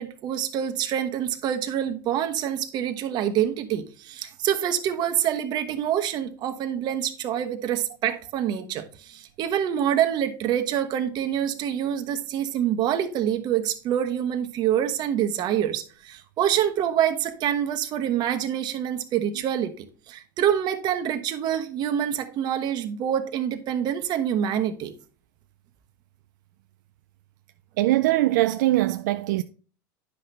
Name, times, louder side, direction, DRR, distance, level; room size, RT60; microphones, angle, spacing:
voice 1, 0.0-24.9, right 10 dB, 45° right, 1.1 m, -26 dB
voice 2, 27.8-29.4, right 16 dB, 75° right, 0.4 m, -21 dB
9.8 x 5.9 x 3.2 m
hypercardioid pair, 105°, 10 cm